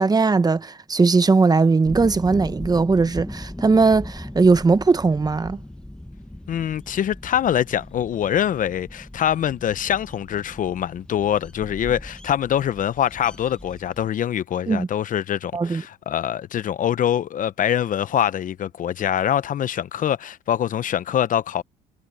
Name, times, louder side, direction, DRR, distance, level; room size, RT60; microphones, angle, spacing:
voice 1, 0.0-5.6 14.7-14.9 15.5-15.8, right 4 dB, 20° right, 1.0 m, -19 dB
sound 1, 1.9-14.1, left 1 dB, 5° left, 1.3 m, -38 dB
voice 2, 6.5-21.6, left 10 dB, 50° left, 0.8 m, -24 dB
supercardioid pair, 80°, 18 cm